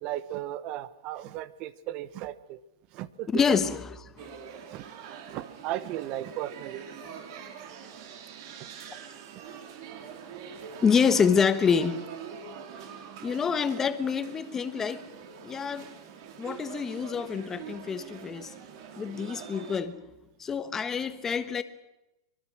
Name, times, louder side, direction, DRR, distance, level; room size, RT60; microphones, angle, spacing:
voice 1, 0.0-2.6 2.9-3.6 4.7-4.8 5.3-6.8, right 13 dB, 40° right, 16 dB, 1.1 m, -36 dB
voice 2, 3.3-4.3 10.8-12.1 13.2-15.0 15.4-15.9 16.4-18.5 19.0-20.0 20.4-21.6, left 6 dB, 15° left, 11 dB, 1.2 m, -27 dB
sound 1, 4.2-19.8, right 7 dB, 55° right, 3.9 m, -44 dB
24.0 x 22.0 x 6.2 m, 0.93 s
hypercardioid pair, 140°, 2 cm